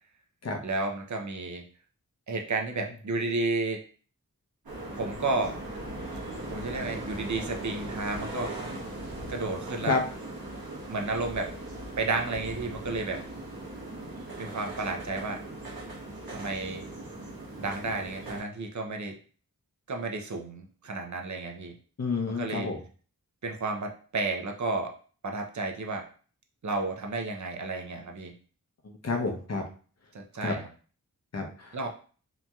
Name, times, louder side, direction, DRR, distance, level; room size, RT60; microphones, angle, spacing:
voice 1, 0.6-1.6 2.3-3.8 5.0-5.6 6.5-8.5 9.3-10.0 10.9-11.5 12.0-13.2 14.4-15.4 16.3-16.9 17.6-19.1 19.9-21.7 22.4-22.7 23.4-24.9 25.2-26.1 26.6-28.3 30.1-30.7 31.7-31.9, right 3 dB, 55° right, 3 dB, 0.6 m, -32 dB
sound 1, 4.6-18.4, right 1 dB, 90° right, 1.0 m, -39 dB
voice 2, 22.0-22.8 28.8-29.6 30.4-30.6 31.3-31.8, left 3 dB, 50° left, 3 dB, 0.6 m, -29 dB
2.9 x 2.6 x 2.3 m, 0.41 s
wide cardioid pair, 65°, 35 cm